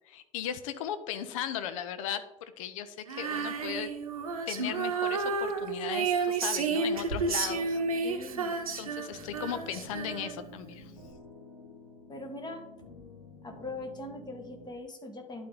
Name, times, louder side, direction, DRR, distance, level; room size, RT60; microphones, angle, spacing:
voice 1, 0.1-2.2 2.6-3.9 4.5-8.1 8.8-10.9, left 9 dB, 65° left, 12 dB, 0.7 m, -37 dB
Female singing, 3.1-10.5, right 4 dB, 75° right, 0.8 m, -31 dB
sound 1, 7.3-14.7, left 2 dB, 85° left, 1.4 m, -50 dB
voice 2, 8.0-8.6 12.1-12.6 13.4-15.5, left 2 dB, 25° left, 5 dB, 1.6 m, -41 dB
11.5 x 4.2 x 3.8 m, 0.92 s
figure-of-eight pair, 60°, 18 cm